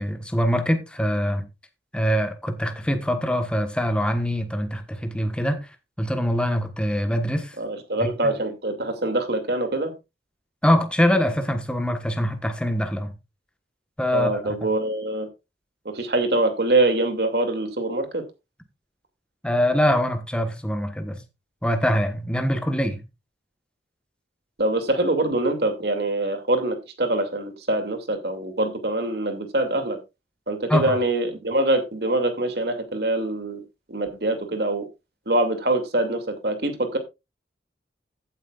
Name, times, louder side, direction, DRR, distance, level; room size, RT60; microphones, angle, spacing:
voice 1, 0.0-1.4 1.9-5.6 6.0-7.6 10.6-13.1 14.0-14.4 19.4-21.2 21.6-23.0 30.7-30.9, equal, 5° left, 1.3 m, -23 dB
voice 2, 7.6-9.9 14.1-15.3 15.8-18.2 24.6-30.0 30.5-33.6 33.9-34.8 35.3-37.0, right 2 dB, 60° right, 2.6 m, -24 dB
15.0 x 9.1 x 2.5 m
head